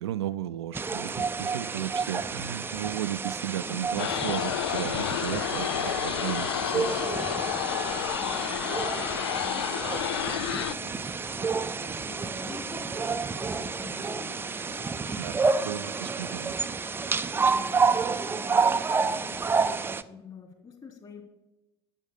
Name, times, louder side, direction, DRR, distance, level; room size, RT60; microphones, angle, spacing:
voice 1, 0.0-7.0 15.2-16.5, right 12 dB, 70° right, 13 dB, 0.5 m, -35 dB
sound 1, 0.7-20.0, right 4 dB, 15° right, 0.5 m, -29 dB
sound 2, 4.0-10.7, left 12 dB, 70° left, 0.4 m, -30 dB
voice 2, 8.0-8.7 9.1-15.7 16.3-16.4 17.4-21.2, left 5 dB, 30° left, 2 dB, 3.3 m, -47 dB
11.0 x 7.9 x 7.3 m, 1.0 s
figure-of-eight pair, 70°, 14 cm